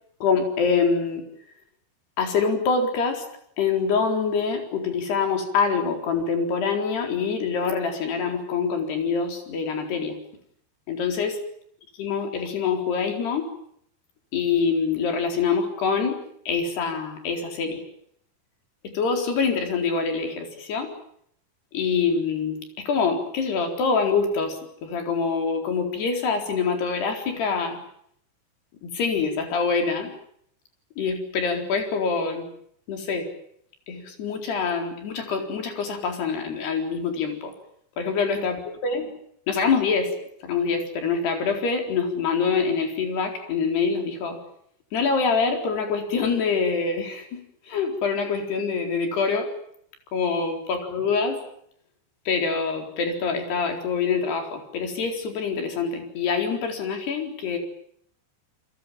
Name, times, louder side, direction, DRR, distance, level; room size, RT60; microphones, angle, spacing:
voice 1, 0.2-1.3 2.2-3.2 3.6-10.2 10.9-11.4 12.0-13.5 14.3-17.8 18.8-20.9 21.7-27.8 28.8-30.1 31.0-32.5 32.9-33.3 33.9-37.5 38.0-38.6 38.8-39.1 39.5-40.1 40.4-44.4 44.9-47.4 47.7-49.5 50.1-51.4 52.3-57.6, left 5 dB, 65° left, 4 dB, 6.3 m, -25 dB
29.5 x 22.5 x 7.6 m, 0.68 s
omnidirectional pair, 5.0 m